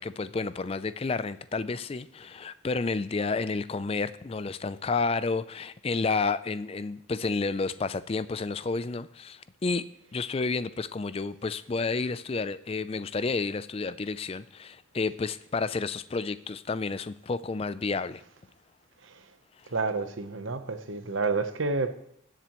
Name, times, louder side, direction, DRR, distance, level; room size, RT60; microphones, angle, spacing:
voice 1, 0.0-9.8 10.1-18.2, left 4 dB, 25° left, 0.3 m, -30 dB
voice 2, 19.7-22.0, right 3 dB, 65° right, 0.8 m, -29 dB
19.0 x 7.5 x 3.0 m
head